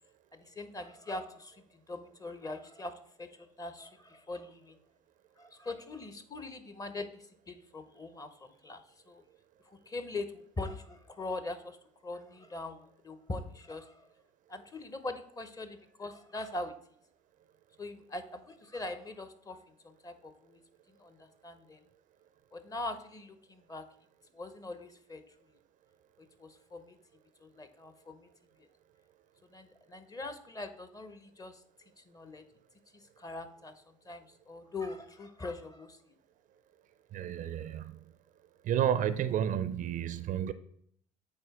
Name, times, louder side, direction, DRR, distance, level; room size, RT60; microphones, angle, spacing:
voice 1, 0.3-4.8 5.4-9.2 9.6-11.8 12.0-14.1 14.5-16.8 17.8-20.6 20.9-21.8 22.5-23.9 24.3-25.3 26.2-27.0 27.4-28.3 28.6-28.7 29.5-31.6 32.0-32.5 32.9-36.2, left 2 dB, 20° left, 0.7 m, -42 dB
voice 2, 37.1-38.0 38.6-40.5, right 9 dB, 45° right, 0.4 m, -31 dB
8.8 x 3.9 x 3.5 m
hypercardioid pair, 65°, 18 cm